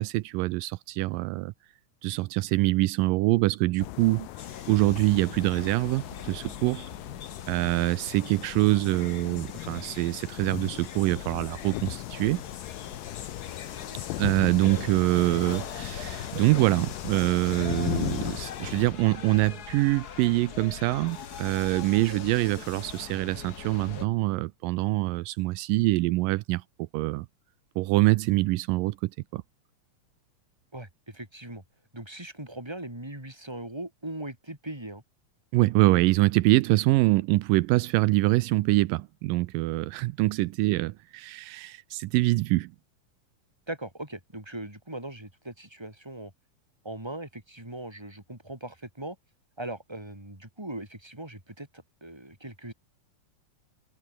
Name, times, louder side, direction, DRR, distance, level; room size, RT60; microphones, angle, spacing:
voice 1, 0.0-1.5 2.0-4.3 4.7-6.9 7.5-12.4 14.2-27.3 27.8-29.4 35.5-42.7, right 20 dB, 85° right, 2.3 m, -25 dB
sound 1, 3.8-18.9, left 21 dB, 85° left, 2.3 m, -38 dB
sound 2, 4.4-24.1, left 7 dB, 60° left, 1.0 m, -41 dB
voice 2, 30.7-31.6 31.9-35.0 43.7-46.3 46.8-49.2 49.6-52.7, right 1 dB, 5° right, 5.0 m, -39 dB
omnidirectional pair, 3.9 m